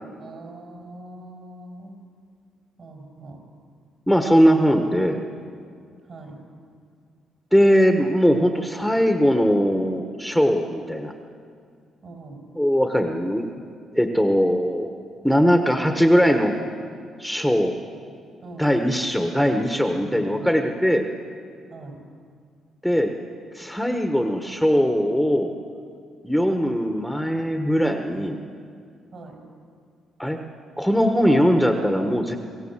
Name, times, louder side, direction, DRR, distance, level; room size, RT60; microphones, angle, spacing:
voice 1, 0.2-2.0 2.8-3.4 6.0-6.4 12.0-12.4 18.4-19.0 20.0-20.5 21.7-22.0 29.1-29.4, right 2 dB, 55° right, 1 dB, 5.8 m, -41 dB
voice 2, 4.1-5.2 7.5-11.1 12.6-13.5 13.9-14.9 15.2-16.6 17.2-17.8 18.6-21.1 22.8-23.1 23.5-25.5 26.2-28.4 30.2-30.4 30.8-32.4, equal, ahead, 5 dB, 1.4 m, -20 dB
24.5 x 16.0 x 7.5 m, 2.2 s
cardioid pair, 90°, 0 cm